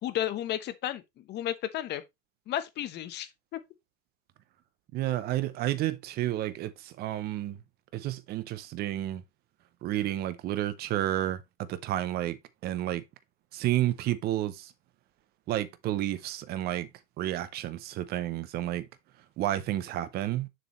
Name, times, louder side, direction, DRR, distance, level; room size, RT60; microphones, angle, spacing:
voice 1, 0.0-2.0 2.5-3.6, left 12 dB, 20° left, 0.8 m, -33 dB
voice 2, 4.9-7.6 7.9-9.2 9.8-12.4 12.6-13.0 13.5-14.7 15.5-16.9 17.2-18.9 19.4-20.5, right 13 dB, 20° right, 0.6 m, -31 dB
7.1 x 6.1 x 3.1 m
hypercardioid pair, 120°, 50 cm